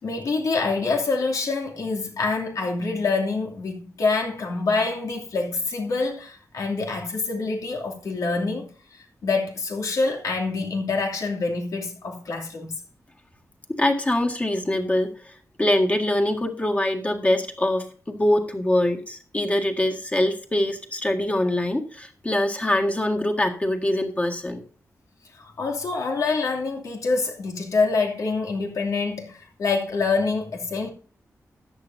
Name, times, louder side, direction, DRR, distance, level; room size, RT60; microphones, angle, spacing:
voice 1, 0.0-12.7 25.4-30.9, left 3 dB, 85° left, 2.8 m, -26 dB
voice 2, 13.7-24.6, left 1 dB, 25° left, 1.8 m, -24 dB
13.5 x 10.0 x 2.7 m
wide cardioid pair, 110°, 6 cm